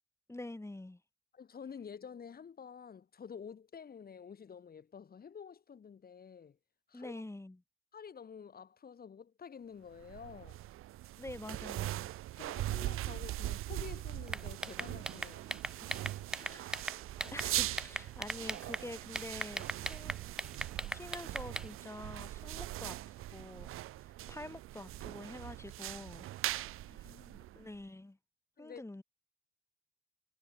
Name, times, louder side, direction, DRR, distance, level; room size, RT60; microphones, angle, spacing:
voice 1, 0.3-1.0 6.9-7.6 11.2-12.1 15.2-15.3 16.4-17.0 17.2-20.1 20.9-26.3 26.7-27.2 27.6-28.2 28.6-29.0, left 2 dB, 15° left, 5.5 m, -47 dB
voice 2, 1.3-6.6 6.9-7.2 7.9-10.6 12.4-15.4 16.5-16.7 26.7-27.5 28.6-28.8, left 7 dB, 45° left, 2.7 m, -50 dB
sound 1, 10.0-27.8, right 15 dB, 85° right, 1.5 m, -41 dB
sound 2, 14.3-17.5 17.8-18.8 19.2-21.7, right 1 dB, 5° right, 0.9 m, -38 dB
cardioid pair, 80°, 21 cm